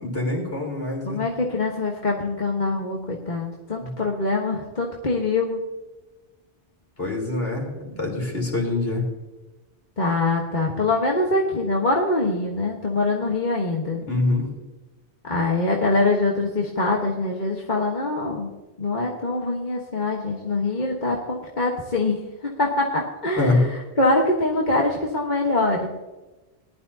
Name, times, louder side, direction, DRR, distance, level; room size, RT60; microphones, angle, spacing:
voice 1, 0.0-1.2 3.8-3.9 7.0-7.7 8.0-9.0 13.9-14.5 23.4-23.6, left 2 dB, 60° left, -1 dB, 4.2 m, -24 dB
voice 2, 1.0-5.6 10.0-14.0 15.3-18.5 18.8-25.9, left 2 dB, 40° left, -1 dB, 1.5 m, -24 dB
20.0 x 11.5 x 2.8 m, 1.1 s
omnidirectional pair, 1.2 m